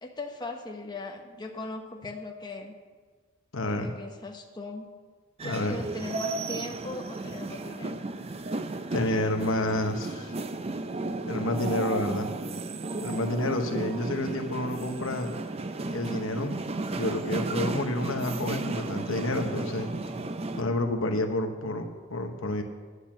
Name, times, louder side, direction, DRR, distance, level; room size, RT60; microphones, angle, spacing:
voice 1, 0.0-2.7 3.7-4.9 5.4-8.0, left 2 dB, 20° left, 1 dB, 1.1 m, -39 dB
voice 2, 3.5-3.9 5.4-5.8 8.9-10.3 11.3-12.3 13.0-15.3 15.9-16.5 16.9-19.9 20.5-22.6, left 1 dB, 65° left, 5 dB, 1.0 m, -29 dB
sound 1, 5.4-20.6, right 2 dB, 30° right, 0.5 m, -34 dB
10.5 x 8.1 x 7.3 m, 1.5 s
head